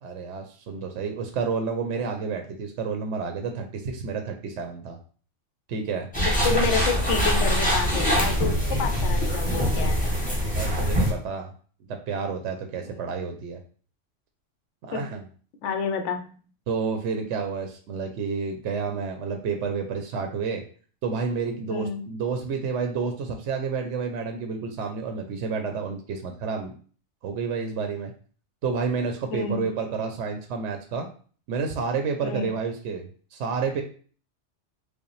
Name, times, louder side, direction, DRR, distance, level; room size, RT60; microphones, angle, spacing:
voice 1, 0.0-5.0 5.7-6.1 10.0-10.2 10.5-11.5 11.9-13.6 14.8-15.3 16.7-20.6 21.0-26.7 27.2-28.1 28.6-31.1 31.5-33.8, right 5 dB, 75° right, 4 dB, 0.9 m, -30 dB
sound 1, 6.1-11.1, equal, 5° left, 1.0 m, -23 dB
voice 2, 6.2-10.2 12.8-13.0 14.9-15.1 15.6-16.3 21.7-22.0 29.3-29.7 32.2-32.5, left 5 dB, 75° left, 5 dB, 0.9 m, -29 dB
5.0 x 2.0 x 3.1 m, 0.42 s
omnidirectional pair, 1.3 m